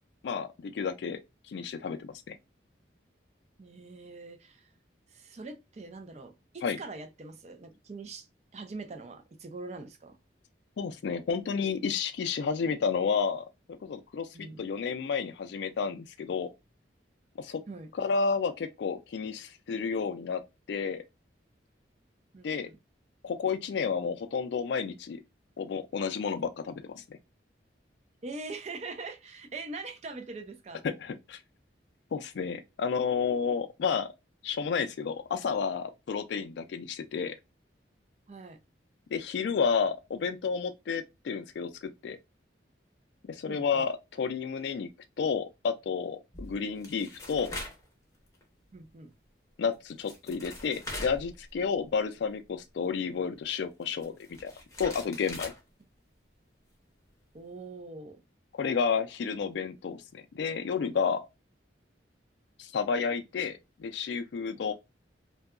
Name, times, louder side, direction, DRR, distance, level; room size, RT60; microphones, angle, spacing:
voice 1, 0.2-1.2 1.5-2.4 6.6-6.8 10.8-13.5 13.8-16.5 17.4-17.6 17.9-20.4 20.7-21.0 22.4-22.7 23.2-25.2 25.6-27.2 31.0-31.4 32.1-34.1 34.4-37.4 39.1-42.2 43.3-44.9 45.2-47.5 49.6-54.1 54.4-54.5 54.8-55.5 58.6-61.2 62.6-64.7, left 6 dB, 70° left, 0.3 m, -31 dB
voice 2, 3.6-4.7 5.1-8.3 8.5-10.2 14.3-14.6 17.7-17.9 22.3-22.8 28.2-30.8 38.3-38.6 43.5-43.8 48.7-49.1 57.3-58.2, right 3 dB, 35° right, 0.4 m, -43 dB
sound 1, 46.3-47.9 48.3-48.4 49.7-49.8 50.0-51.9 52.1-52.2 53.8-55.6, left 2 dB, 15° left, 0.6 m, -42 dB
2.7 x 2.2 x 2.3 m
head